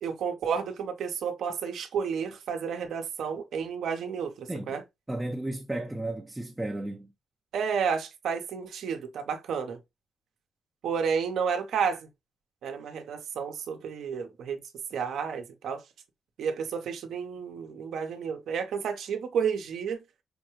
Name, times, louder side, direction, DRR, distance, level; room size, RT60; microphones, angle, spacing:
voice 1, 0.0-4.8 7.5-9.8 10.8-12.1 12.6-14.6 14.9-15.8 16.4-20.0, right 6 dB, 70° right, 0.9 m, -31 dB
voice 2, 5.1-7.1, right 1 dB, 10° right, 0.6 m, -33 dB
5.2 x 2.2 x 3.1 m
cardioid pair, 90°, 0 cm